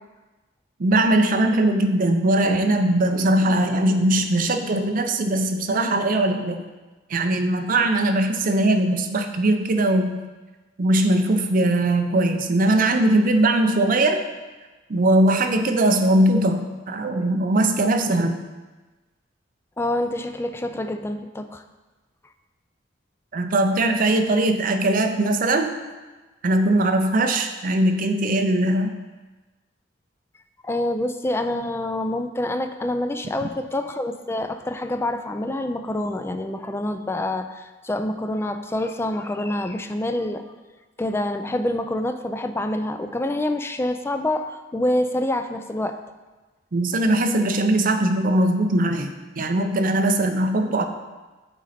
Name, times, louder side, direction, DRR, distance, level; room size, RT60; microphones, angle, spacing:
voice 1, 0.8-6.6 7.1-10.2 10.8-14.3 14.9-18.4 23.3-25.8 26.4-29.0 46.7-50.8, right 1 dB, 45° right, 6 dB, 0.5 m, -20 dB
voice 2, 19.8-21.6 30.6-40.4 41.0-46.0, left 1 dB, 15° left, 7 dB, 0.3 m, -26 dB
8.0 x 3.9 x 4.2 m, 1.2 s
head